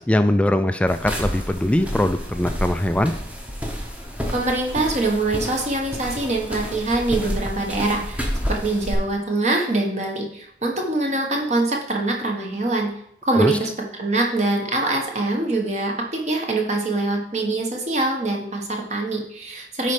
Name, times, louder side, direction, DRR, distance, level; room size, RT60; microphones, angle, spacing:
voice 1, 0.0-3.1 13.3-13.6, left 1 dB, 5° left, 9 dB, 0.3 m, -21 dB
sound 1, 0.9-8.9, equal, 10° right, 0.9 m, -30 dB
voice 2, 4.3-12.9 13.2-13.7 14.0-19.9, right 2 dB, 40° right, 1 dB, 1.3 m, -24 dB
9.5 x 4.2 x 4.9 m, 0.73 s
head